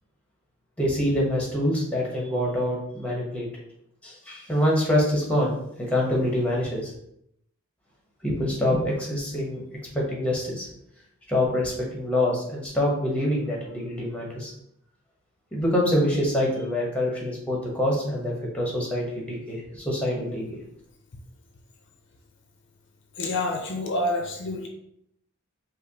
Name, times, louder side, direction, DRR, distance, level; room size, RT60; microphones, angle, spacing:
voice 1, 0.8-3.5 4.0-5.5 5.9-6.9 8.2-9.6 9.9-10.7 11.3-14.5 15.5-20.6, left 1 dB, 5° left, -3 dB, 0.8 m, -25 dB
voice 2, 23.2-24.7, left 2 dB, 60° left, 2 dB, 0.5 m, -27 dB
4.9 x 2.0 x 2.7 m, 0.75 s
head